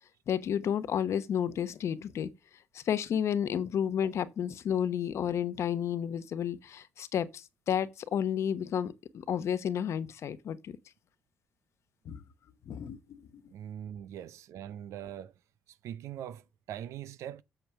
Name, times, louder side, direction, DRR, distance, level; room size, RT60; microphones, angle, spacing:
voice 1, 0.3-2.3 2.7-8.9 9.3-10.8 12.0-12.2 12.7-13.2, left 9 dB, 65° left, 1.0 m, -31 dB
voice 2, 13.5-15.3 15.8-17.4, right 10 dB, 80° right, 0.7 m, -42 dB
7.9 x 6.6 x 5.8 m
cardioid pair, 75°, 5 cm